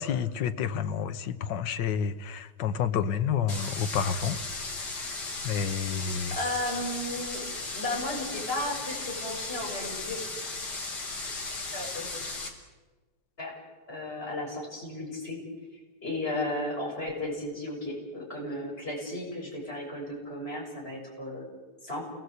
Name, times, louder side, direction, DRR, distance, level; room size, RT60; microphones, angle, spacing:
voice 1, 0.0-4.4 5.4-6.4, left 7 dB, 75° left, 1.0 m, -29 dB
sound 1, 3.5-12.5, left 3 dB, 55° left, 4.4 m, -36 dB
voice 2, 6.3-10.2 11.7-12.1 13.4-13.6 13.9-15.4 16.0-21.5 21.8-22.0, left 1 dB, 20° left, 7.0 m, -34 dB
29.0 x 21.0 x 8.1 m
omnidirectional pair, 3.3 m